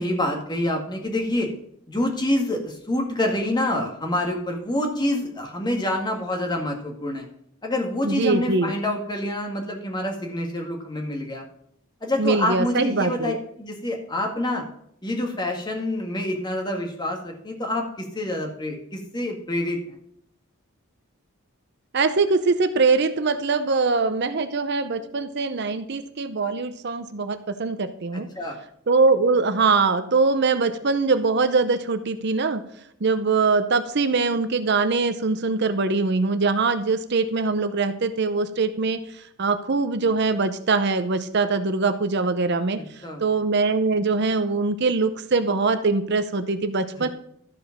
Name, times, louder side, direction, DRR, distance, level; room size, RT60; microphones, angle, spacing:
voice 1, 0.0-1.5 1.9-7.3 7.6-11.4 12.0-14.6 15.0-20.0 28.4-28.6 43.0-43.2 47.0-47.1, left 1 dB, 20° left, 2 dB, 1.7 m, -27 dB
voice 2, 8.0-8.7 12.2-13.4 21.9-28.3 28.9-32.6 33.0-47.1, right 4 dB, 50° right, 10 dB, 0.7 m, -22 dB
13.0 x 5.1 x 5.8 m, 0.69 s
head